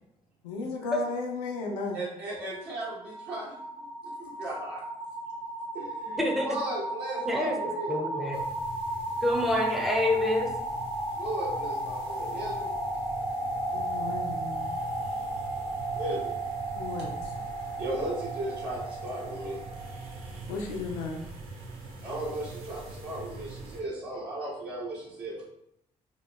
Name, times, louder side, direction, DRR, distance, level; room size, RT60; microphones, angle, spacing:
voice 1, 0.4-2.0 13.7-14.8 16.7-17.3 20.5-21.3, left 3 dB, 85° left, 1 dB, 0.4 m, -35 dB
voice 2, 1.9-3.5 4.2-4.8 5.7-8.4 11.2-12.7 15.8-16.4 16.8-17.0 17.6-20.0 21.7-25.4, right 1 dB, 60° right, -7 dB, 1.2 m, -37 dB
sound 1, 2.4-20.3, right 1 dB, 45° right, 1.1 m, -34 dB
voice 3, 6.2-6.6 7.2-8.4 9.2-10.5, left 1 dB, ahead, 1 dB, 0.5 m, -27 dB
sound 2, 8.3-23.8, right 3 dB, 80° right, 0.4 m, -44 dB
2.8 x 2.1 x 2.2 m, 0.77 s
hypercardioid pair, 40°, 19 cm